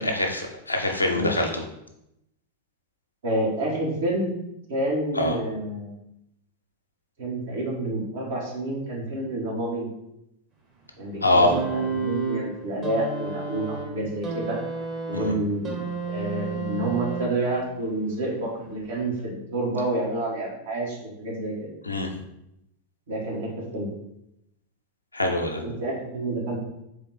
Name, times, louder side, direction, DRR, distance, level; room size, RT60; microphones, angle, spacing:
voice 1, 0.0-1.5 5.2-5.4 11.2-11.6 15.1-15.3 21.9-22.1 25.1-25.6, left 1 dB, 85° left, 2 dB, 0.6 m, -23 dB
voice 2, 1.1-1.5 3.2-4.4 4.7-5.9 7.2-9.9 11.0-14.6 15.1-21.7 23.1-23.9 25.6-26.6, right 1 dB, 60° right, -4 dB, 1.6 m, -29 dB
sound 1, 11.5-17.7 18.7-18.8, right 4 dB, 30° right, 1.2 m, -31 dB
4.0 x 3.2 x 4.1 m, 0.83 s
figure-of-eight pair, 90°, 0 cm